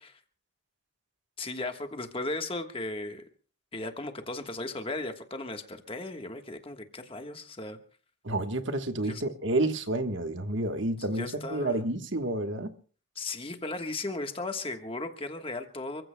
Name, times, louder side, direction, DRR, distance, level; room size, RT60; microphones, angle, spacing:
voice 1, 1.4-3.2 3.7-7.8 9.0-9.2 11.2-11.8 13.2-16.0, left 2 dB, 25° left, 1.4 m, -36 dB
voice 2, 8.2-12.7, right 2 dB, 60° right, 1.3 m, -30 dB
29.0 x 15.5 x 2.2 m
head